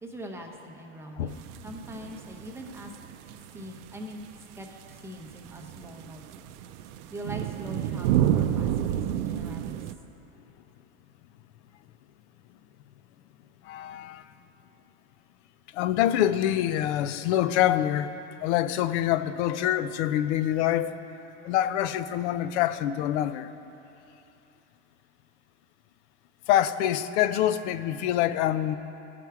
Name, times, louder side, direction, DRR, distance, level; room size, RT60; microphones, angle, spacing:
voice 1, 0.0-2.9 3.5-4.2 4.5-6.2 7.1-9.8, equal, 5° right, 1 dB, 0.7 m, -42 dB
sound 1, 1.3-9.9, right 11 dB, 75° right, 0.5 m, -30 dB
voice 2, 13.6-14.3 15.7-18.1 18.4-21.0 21.4-23.5 26.5-28.7, left 12 dB, 70° left, 13 dB, 0.5 m, -25 dB
14.5 x 6.0 x 4.6 m, 2.9 s
supercardioid pair, 145°, 36 cm